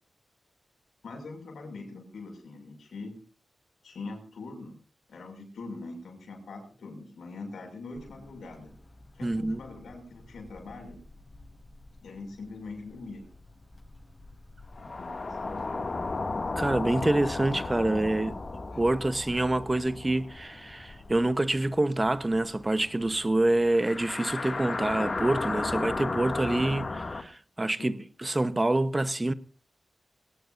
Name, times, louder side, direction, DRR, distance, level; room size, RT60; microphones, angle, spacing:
voice 1, 1.0-3.2 3.8-4.8 5.1-8.7 9.1-11.0 12.0-13.3 14.8-15.8 16.9-17.1 18.7-18.9 27.8-28.0, left 3 dB, 85° left, 6.3 m, -43 dB
sound 1, 7.9-24.1, left 1 dB, 30° left, 7.7 m, -51 dB
voice 2, 9.2-9.6 16.6-18.3 18.8-29.3, right 2 dB, 25° right, 1.0 m, -27 dB
sound 2, 14.7-21.3 21.6-21.7 23.7-27.2, left 3 dB, 45° left, 2.3 m, -34 dB
22.5 x 18.0 x 2.6 m
cardioid pair, 60°, 0 cm